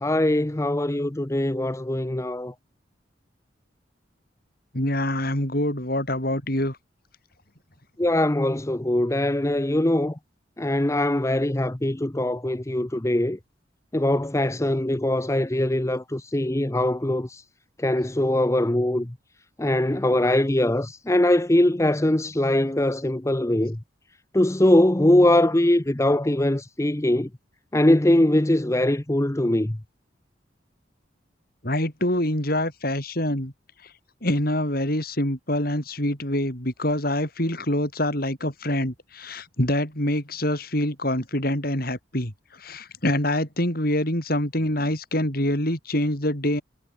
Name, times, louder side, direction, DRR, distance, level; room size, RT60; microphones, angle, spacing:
voice 1, 0.0-2.5 8.0-10.2 10.6-13.4 13.9-17.4 17.8-19.1 19.6-23.8 24.3-27.3 27.7-29.8, left 1 dB, 15° left, 0.7 m, -22 dB
voice 2, 4.7-6.8 31.6-33.5 34.2-42.3 42.6-46.6, left 1 dB, 50° left, 7.4 m, -25 dB
head